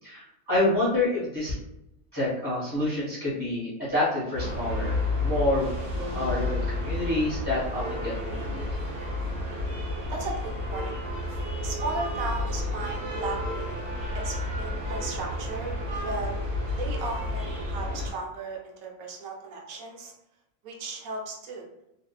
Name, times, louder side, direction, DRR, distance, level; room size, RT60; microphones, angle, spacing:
voice 1, 0.0-1.6 2.1-5.7 6.1-8.6, left 2 dB, 20° left, -9 dB, 0.7 m, -28 dB
sound 1, 4.3-18.1, left 1 dB, 60° right, 1.2 m, -31 dB
sound 2, 6.0-10.0, equal, 20° right, 0.8 m, -47 dB
voice 2, 10.1-11.0 11.6-13.8 14.1-16.3 16.8-20.1 20.6-21.7, right 3 dB, 80° right, -1 dB, 1.0 m, -36 dB
2.6 x 2.2 x 2.3 m, 0.86 s
omnidirectional pair, 1.5 m